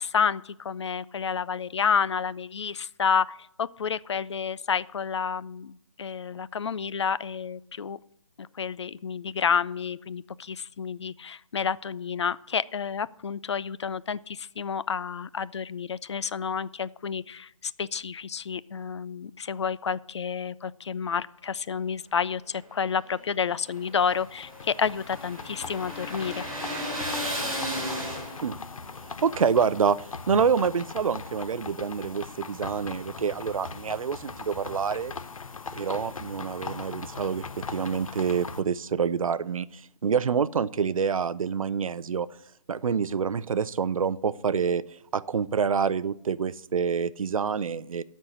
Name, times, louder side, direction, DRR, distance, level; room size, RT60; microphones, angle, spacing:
voice 1, 0.0-8.0 8.4-26.4, left 6 dB, 55° left, 18 dB, 0.4 m, -30 dB
sound 1, 23.2-28.6, equal, ahead, 3.2 m, -34 dB
sound 2, 23.7-38.6, left 4 dB, 80° left, 0.8 m, -40 dB
voice 2, 29.0-30.0 30.3-35.1 35.7-42.3 42.7-44.8 45.1-48.0, right 6 dB, 75° right, 17 dB, 0.5 m, -27 dB
12.5 x 4.4 x 8.1 m, 0.76 s
hypercardioid pair, 165°, 17 cm